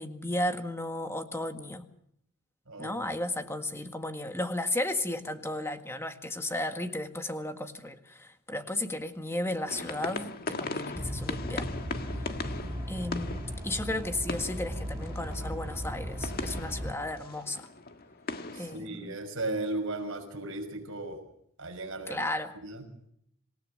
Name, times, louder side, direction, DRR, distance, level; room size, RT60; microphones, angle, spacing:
voice 1, 0.0-1.8 2.8-11.8 12.4-12.6 12.9-17.7 18.5-19.2 22.1-22.6, left 1 dB, 10° left, 7 dB, 1.7 m, -34 dB
sound 1, 9.7-18.8, left 3 dB, 45° left, 1.6 m, -39 dB
sound 2, 10.9-16.9, equal, 10° right, 2.9 m, -37 dB
voice 2, 18.5-21.2 21.6-22.2 22.6-22.9, right 2 dB, 60° right, 4 dB, 5.8 m, -36 dB
27.0 x 17.5 x 6.6 m, 0.71 s
head